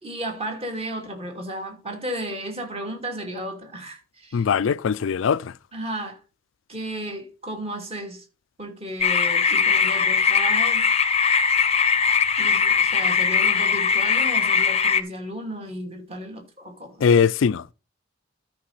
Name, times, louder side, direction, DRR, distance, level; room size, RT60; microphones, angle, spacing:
voice 1, 0.0-4.4 5.7-6.2 6.7-8.2 8.6-10.9 12.4-17.0, right 1 dB, 30° right, 2.6 m, -34 dB
voice 2, 4.3-5.5 17.0-17.7, left 6 dB, 65° left, 0.4 m, -21 dB
sound 1, 9.0-15.0, left 6 dB, 30° left, 0.7 m, -20 dB
13.0 x 5.3 x 4.2 m
head